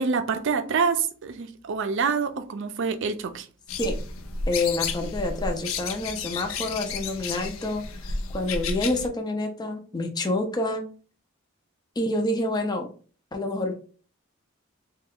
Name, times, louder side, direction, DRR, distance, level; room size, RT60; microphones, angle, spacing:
voice 1, 0.0-3.5, right 5 dB, 65° right, 0.5 m, -26 dB
sound 1, 3.7-9.1, left 4 dB, 80° left, 0.5 m, -32 dB
voice 2, 4.5-10.8 12.0-12.9 13.3-13.7, left 2 dB, 20° left, 0.5 m, -28 dB
3.3 x 2.3 x 3.5 m
head